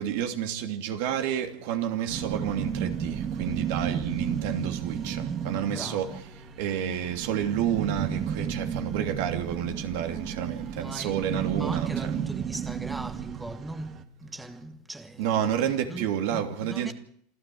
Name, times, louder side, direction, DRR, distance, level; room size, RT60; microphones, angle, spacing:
voice 1, 0.0-6.1 6.4-12.1 15.2-16.9, right 9 dB, 70° right, 2.9 m, -30 dB
sound 1, 2.1-14.0, right 8 dB, 35° right, 2.0 m, -33 dB
voice 2, 5.7-6.2 10.8-16.9, right 2 dB, 10° right, 1.2 m, -40 dB
27.5 x 13.0 x 7.9 m
supercardioid pair, 110°, 0 cm